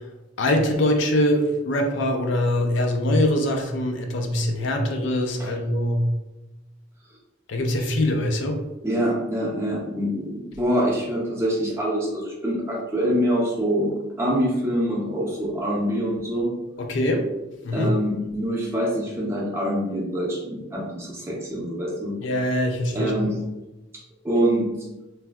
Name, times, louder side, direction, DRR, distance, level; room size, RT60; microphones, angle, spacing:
voice 1, 0.4-6.0 7.5-8.6 16.8-17.3 17.6-17.9 22.2-23.1, left 1 dB, 65° left, 4 dB, 0.4 m, -23 dB
voice 2, 8.8-13.9 14.2-16.5 17.7-22.2 22.9-23.3 24.2-24.7, equal, 15° right, -3 dB, 0.6 m, -25 dB
3.2 x 2.6 x 2.2 m, 1.0 s
head